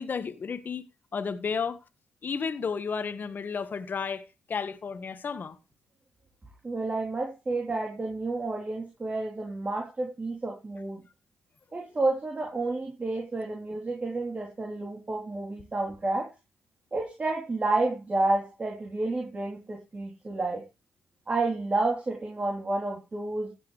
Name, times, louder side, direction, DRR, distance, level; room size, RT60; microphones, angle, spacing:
voice 1, 0.0-1.8 2.2-4.2 4.5-5.6, left 5 dB, 50° left, 1.5 m, -32 dB
voice 2, 6.6-11.0 11.7-16.3 16.9-20.6 21.3-23.5, right 2 dB, 30° right, 3.5 m, -30 dB
16.0 x 8.5 x 3.3 m
supercardioid pair, 60°, 4 cm